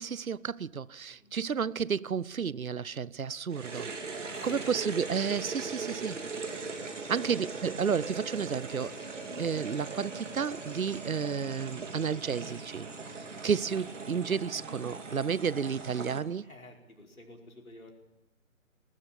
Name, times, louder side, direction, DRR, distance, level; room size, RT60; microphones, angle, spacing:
voice 1, 0.0-3.9 4.4-6.2 7.1-8.9 9.4-12.9 13.1-16.5, right 6 dB, 80° right, 0.7 m, -32 dB
sound 1, 3.5-16.2, right 4 dB, 60° right, 3.3 m, -40 dB
voice 2, 4.3-4.8 7.2-7.3 13.0-13.3 16.4-17.9, left 1 dB, 85° left, 5.1 m, -50 dB
20.0 x 19.5 x 8.8 m
figure-of-eight pair, 140°, 41 cm